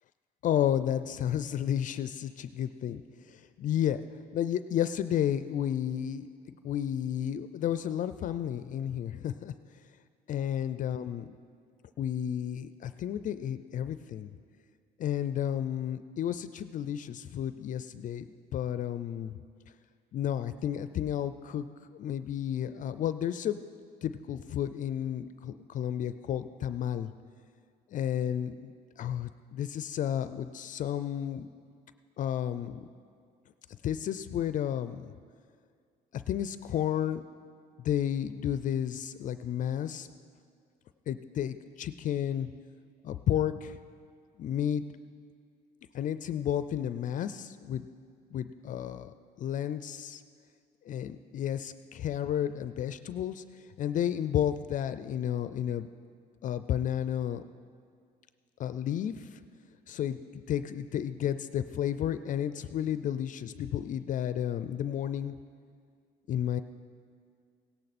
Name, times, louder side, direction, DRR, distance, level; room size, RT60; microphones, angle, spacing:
voice 1, 0.4-3.0 3.3-4.0 4.3-9.5 10.3-11.3 12.0-14.3 15.0-19.3 20.1-21.7 21.9-23.6 24.0-27.1 27.9-31.5 32.2-32.9 33.8-35.1 36.1-37.2 37.8-40.1 41.1-42.5 43.0-43.8 44.4-44.9 45.9-47.8 48.3-50.2 50.9-53.4 53.8-55.9 56.4-57.4 58.6-59.4 59.9-65.4 66.3-66.6, left 10 dB, 50° left, 12 dB, 0.4 m, -32 dB
17.0 x 11.0 x 4.2 m, 2.1 s
cardioid pair, 110°, 17 cm